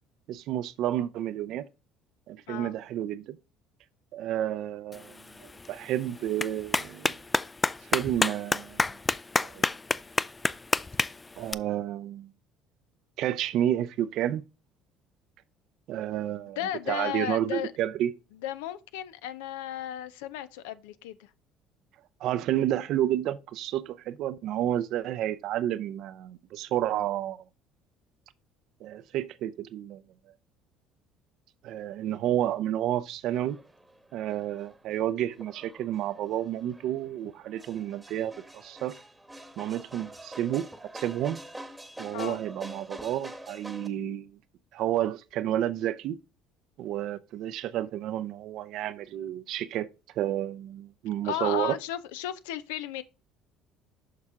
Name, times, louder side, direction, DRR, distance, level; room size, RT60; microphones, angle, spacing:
voice 1, 0.3-1.6 2.3-3.4 4.1-7.2 7.9-8.8 9.4-9.6 11.4-12.3 13.2-14.4 15.9-16.6 16.9-18.1 22.2-27.4 28.8-30.0 31.6-33.6 34.1-38.9 39.6-40.7 40.9-41.4 42.0-44.4 44.7-46.2 46.8-49.9 50.2-51.8, right 12 dB, 65° right, 0.5 m, -30 dB
Clapping, 4.9-11.5, left 3 dB, 20° left, 0.3 m, -30 dB
voice 2, 16.6-17.7 18.4-21.3 42.1-42.4 51.2-53.0, left 12 dB, 85° left, 0.5 m, -34 dB
sound 1, 33.3-43.9, right 1 dB, 10° right, 1.1 m, -46 dB
6.6 x 5.7 x 3.6 m
hypercardioid pair, 70°, 0 cm